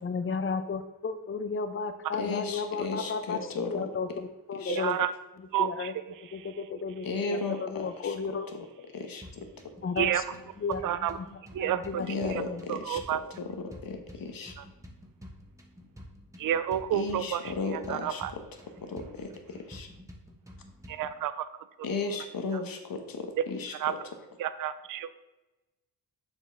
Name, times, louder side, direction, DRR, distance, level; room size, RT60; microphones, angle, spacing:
voice 1, 0.0-5.0 5.6-5.9 6.2-8.5 9.8-12.6, left 5 dB, 30° left, 10 dB, 0.6 m, -34 dB
voice 2, 2.1-3.8 4.5-4.8 7.0-8.1 8.9-9.2 12.0-14.5 16.9-18.2 18.8-19.9 21.8-24.0, left 4 dB, 60° left, 5 dB, 1.1 m, -35 dB
voice 3, 4.7-5.1 5.5-6.0 6.3-6.5 10.0-10.2 10.8-11.2 11.5-12.4 12.7-13.2 14.6-14.7 16.4-18.3 20.9-21.5 23.4-23.5 23.8-23.9 24.4-25.1, right 11 dB, 55° right, 13 dB, 0.5 m, -30 dB
sound 1, 9.2-21.2, equal, 10° right, 1.1 m, -50 dB
6.9 x 4.5 x 3.4 m, 1.1 s
cardioid pair, 70°, 40 cm